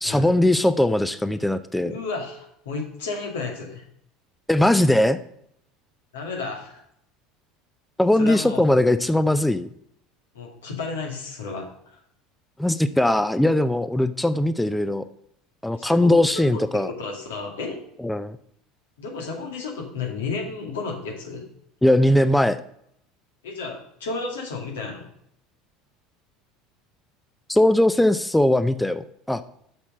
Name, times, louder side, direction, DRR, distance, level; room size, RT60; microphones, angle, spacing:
voice 1, 0.0-1.9 4.5-5.2 8.0-9.7 12.6-15.0 15.6-16.9 18.0-18.4 21.8-22.6 27.5-29.4, left 1 dB, 5° left, 13 dB, 0.5 m, -20 dB
voice 2, 1.8-3.8 6.1-6.8 8.2-8.6 10.3-12.0 15.8-16.1 16.5-17.8 19.0-21.5 23.4-25.1, left 4 dB, 85° left, 1 dB, 2.1 m, -32 dB
6.6 x 5.9 x 5.4 m, 0.71 s
hypercardioid pair, 85°, 0 cm